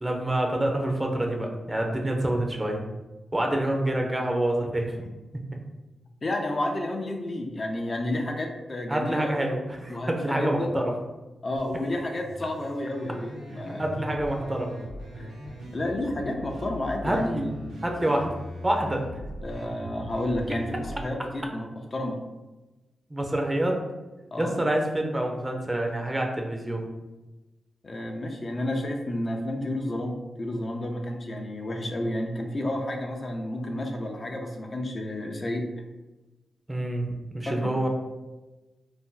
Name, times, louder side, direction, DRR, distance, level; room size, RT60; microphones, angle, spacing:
voice 1, 0.0-2.8 3.3-5.1 8.9-10.9 13.8-14.7 17.0-17.5 17.8-18.3 18.6-19.1 23.1-23.9 24.4-26.8 36.7-37.9, right 1 dB, 20° right, 1 dB, 0.6 m, -27 dB
voice 2, 6.2-9.5 9.9-10.7 11.4-13.8 15.2-15.3 15.7-17.5 19.4-22.2 24.3-24.5 27.8-35.7 37.5-37.7, left 1 dB, 45° left, 2 dB, 0.5 m, -31 dB
sound 1, 11.5-21.0, equal, 85° right, 0.7 m, -40 dB
2.6 x 2.1 x 3.7 m, 1.1 s
cardioid pair, 60°, 0 cm